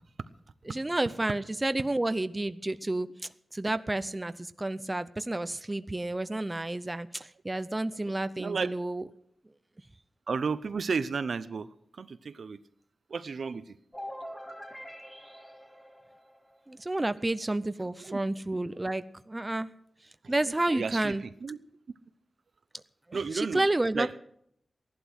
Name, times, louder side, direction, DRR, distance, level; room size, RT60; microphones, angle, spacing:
voice 1, 0.6-3.1 3.5-9.0 16.7-19.7 20.3-21.2 23.1-24.2, right 2 dB, 20° right, 13 dB, 0.6 m, -30 dB
voice 2, 8.4-8.7 10.3-11.7 12.0-12.6 13.1-13.6 18.1-18.2 20.2-20.3 20.7-21.1 21.4-21.6 23.1-23.6 23.9-24.2, right 5 dB, 75° right, 13 dB, 0.7 m, -32 dB
sound 1, 13.9-16.7, equal, 10° left, 2.3 m, -44 dB
16.0 x 11.5 x 6.3 m, 0.71 s
wide cardioid pair, 95°, 0 cm